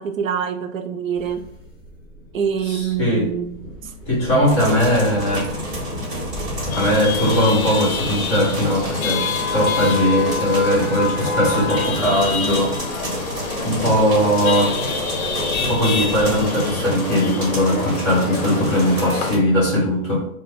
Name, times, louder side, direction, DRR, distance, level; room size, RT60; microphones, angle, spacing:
voice 1, 0.0-1.4 2.3-3.6 3.8-3.9 4.6-4.7, right 7 dB, 65° right, 6 dB, 0.5 m, -25 dB
sound 1, 1.1-16.5, equal, 5° right, 0.5 m, -37 dB
voice 2, 2.6-3.3 4.1-5.5 6.7-13.3 13.6-14.7 15.6-20.3, equal, 20° left, -8 dB, 1.3 m, -19 dB
sound 2, 4.4-19.4, equal, 40° right, 1.0 m, -29 dB
Chatter / Vehicle horn car horn honking / Traffic noise roadway noise, 6.7-19.3, left 5 dB, 75° left, 0.7 m, -27 dB
2.8 x 2.1 x 3.4 m, 0.71 s
hypercardioid pair, 170°, 43 cm